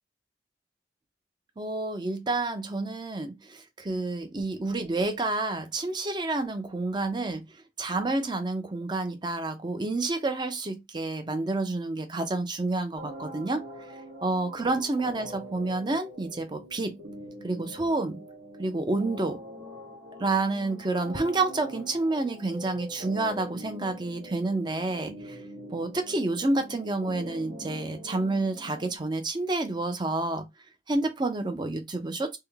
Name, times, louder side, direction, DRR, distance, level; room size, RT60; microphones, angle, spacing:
voice 1, 1.6-7.4 7.8-13.6 14.2-17.0 17.4-18.2 18.6-19.4 20.2-25.4 25.7-30.4 30.9-32.4, right 2 dB, 25° right, 0.5 m, -29 dB
sound 1, 13.0-29.0, equal, 45° right, 1.4 m, -44 dB
3.6 x 2.1 x 3.4 m
head